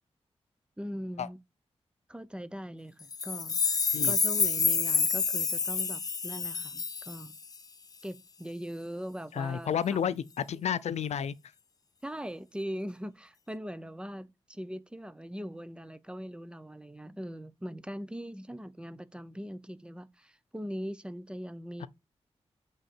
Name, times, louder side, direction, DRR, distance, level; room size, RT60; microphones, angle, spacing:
voice 1, 0.8-1.4 2.1-3.6 4.0-7.4 8.0-10.3 12.0-21.9, equal, 10° right, 0.6 m, -41 dB
sound 1, 3.1-7.6, left 5 dB, 35° left, 0.3 m, -28 dB
voice 2, 9.3-11.3 21.8-21.9, left 8 dB, 85° left, 0.5 m, -31 dB
8.1 x 3.8 x 4.3 m
wide cardioid pair, 105°, 11 cm